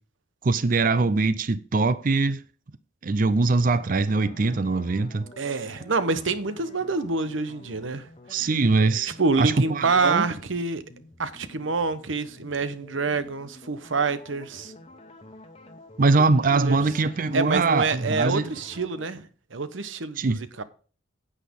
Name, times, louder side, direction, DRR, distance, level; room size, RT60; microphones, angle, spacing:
voice 1, 0.4-2.4 3.0-5.3 8.3-10.2 16.0-18.4 20.2-20.4, right 3 dB, 45° right, 0.5 m, -22 dB
sound 1, 3.4-19.1, left 2 dB, 30° left, 1.1 m, -49 dB
voice 2, 5.4-8.5 9.2-10.8 11.2-14.7 16.2-16.8 17.3-19.2 19.5-20.6, right 4 dB, 85° right, 1.0 m, -27 dB
9.7 x 8.4 x 3.6 m
head